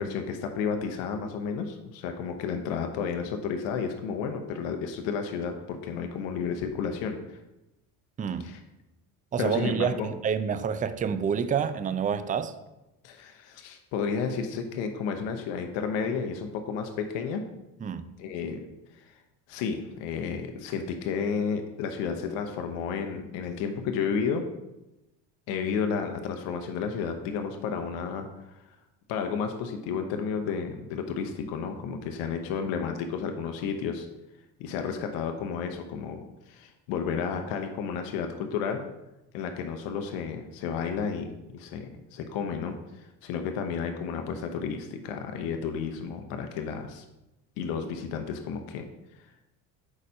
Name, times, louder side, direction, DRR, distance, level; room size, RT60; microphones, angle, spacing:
voice 1, 0.0-7.4 8.4-8.6 9.4-10.1 13.0-17.4 18.2-18.6 18.9-19.2 19.5-24.5 25.5-28.3 28.5-28.6 29.1-34.1 34.6-38.8 39.3-47.0 47.6-48.8, left 6 dB, 80° left, 0.7 m, -32 dB
voice 2, 8.2-8.5 9.3-12.5 17.8-18.1, right 7 dB, 20° right, 0.3 m, -28 dB
4.8 x 4.2 x 5.5 m
supercardioid pair, 75°, 43 cm